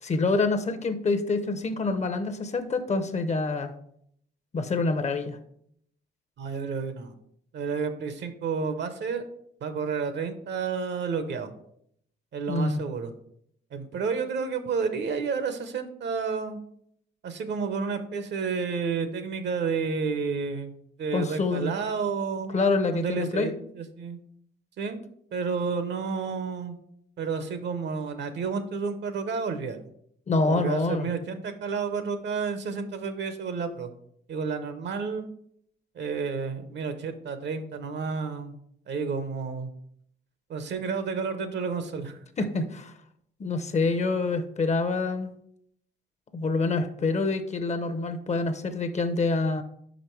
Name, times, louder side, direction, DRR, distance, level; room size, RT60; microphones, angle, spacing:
voice 1, 0.0-3.7 4.5-5.4 12.5-12.8 21.1-21.7 22.5-23.5 30.3-31.1 42.4-42.9 43.4-45.3 46.3-49.6, left 3 dB, 35° left, 8 dB, 0.7 m, -26 dB
voice 2, 6.4-7.1 7.5-9.2 9.6-11.5 12.3-13.1 13.7-16.6 17.2-20.7 21.0-22.5 22.9-24.2 24.8-25.0 25.3-26.8 27.2-29.8 30.4-33.9 34.3-35.3 35.9-38.6 38.9-39.7 40.5-42.2, right 5 dB, 60° right, 10 dB, 0.8 m, -30 dB
5.3 x 5.1 x 4.5 m, 0.69 s
cardioid pair, 90°, 20 cm